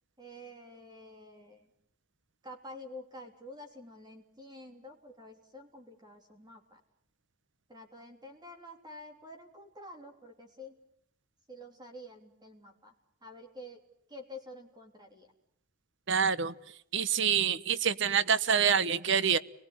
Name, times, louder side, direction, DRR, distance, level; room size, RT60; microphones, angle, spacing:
voice 1, 0.2-1.7 2.4-6.8 7.7-10.8 11.5-12.9 13.2-13.8 14.1-15.3, left 1 dB, 20° right, 3 dB, 3.3 m, -49 dB
voice 2, 16.1-16.5 16.9-19.4, right 7 dB, 60° right, 15 dB, 1.1 m, -26 dB
29.0 x 20.0 x 9.9 m, 0.75 s
head